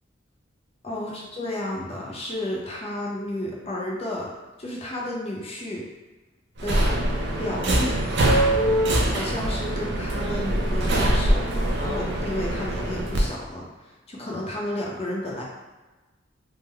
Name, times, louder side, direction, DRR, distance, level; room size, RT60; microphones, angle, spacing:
voice 1, 0.8-4.3 4.6-5.9 6.6-6.8 7.4-8.0 9.1-15.4, left 1 dB, 30° left, -3 dB, 0.6 m, -32 dB
Subway metro underground, 6.6-13.2, right 1 dB, 60° right, 0.6 m, -23 dB
3.5 x 2.0 x 3.3 m, 1.2 s
head